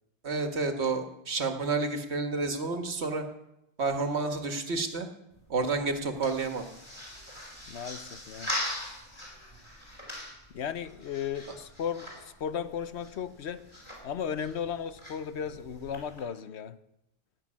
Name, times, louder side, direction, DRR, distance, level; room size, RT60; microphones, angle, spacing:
voice 1, 0.2-3.2 3.8-5.1 5.5-6.6, right 3 dB, 90° right, 1.8 m, -30 dB
sound 1, 5.3-16.2, left 1 dB, 25° left, 4.9 m, -42 dB
voice 2, 7.7-8.6 10.5-13.7 14.0-16.8, left 8 dB, 85° left, 1.1 m, -35 dB
17.0 x 6.6 x 9.7 m
omnidirectional pair, 1.1 m